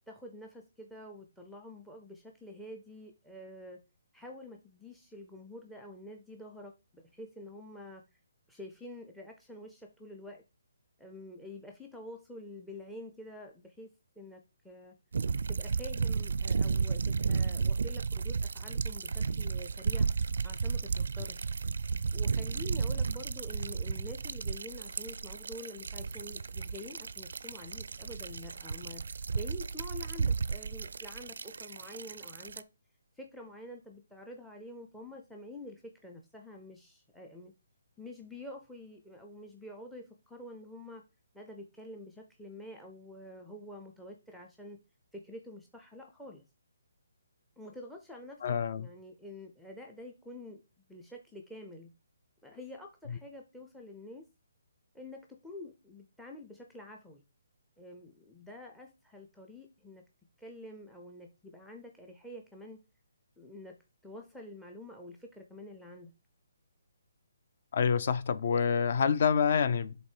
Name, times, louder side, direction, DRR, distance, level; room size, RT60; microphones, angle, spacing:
voice 1, 0.1-3.8 4.1-8.2 8.5-10.4 11.0-14.9 15.5-20.1 20.4-21.5 22.1-32.6 33.2-37.5 38.0-41.0 41.3-44.8 45.1-46.4 47.6-50.6 50.9-51.9 52.4-54.2 54.9-57.2 57.8-60.0 60.4-62.8 63.4-63.7 64.0-66.1, left 1 dB, ahead, 0.5 m, -48 dB
sound 1, 15.1-32.6, right 5 dB, 70° right, 0.4 m, -33 dB
voice 2, 48.4-48.9 53.1-53.2 67.7-70.0, left 6 dB, 45° left, 0.6 m, -27 dB
8.0 x 3.4 x 4.5 m
hypercardioid pair, 165°, 0 cm